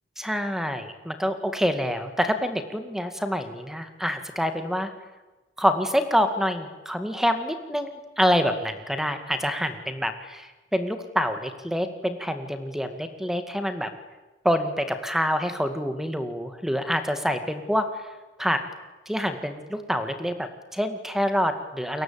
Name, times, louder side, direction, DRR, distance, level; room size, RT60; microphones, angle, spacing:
voice 1, 0.2-4.9 5.6-13.9 14.4-18.1 18.4-18.6 19.1-22.0, equal, ahead, 8 dB, 2.0 m, -26 dB
29.5 x 22.5 x 8.8 m, 1.2 s
head